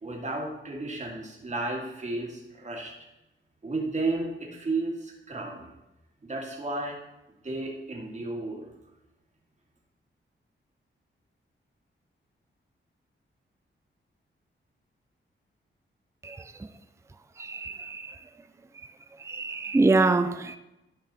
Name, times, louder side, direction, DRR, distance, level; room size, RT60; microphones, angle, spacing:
voice 1, 0.0-2.9 3.6-5.7 6.2-7.0 7.3-8.7, right 2 dB, 35° right, 2.2 m, -33 dB
voice 2, 17.4-18.1 19.2-20.6, right 3 dB, 15° right, 0.4 m, -25 dB
12.0 x 5.3 x 4.2 m
wide cardioid pair, 120°, 20 cm